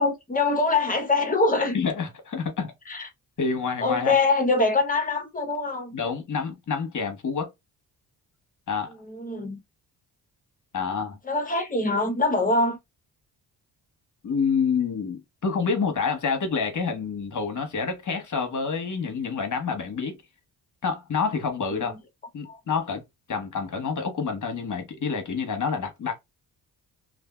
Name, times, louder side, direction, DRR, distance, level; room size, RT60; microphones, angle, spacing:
voice 1, 0.0-1.8 2.9-3.1 3.8-6.0 9.1-9.6 11.2-12.8 22.4-22.6, left 3 dB, 20° left, 0.9 m, -24 dB
voice 2, 1.7-2.7 3.4-4.1 5.9-7.5 8.7-8.9 10.7-11.2 14.2-20.2 20.8-22.0 22.3-23.0 23.3-26.2, left 5 dB, 50° left, 1.1 m, -28 dB
2.6 x 2.4 x 2.3 m
cardioid pair, 70°, 40 cm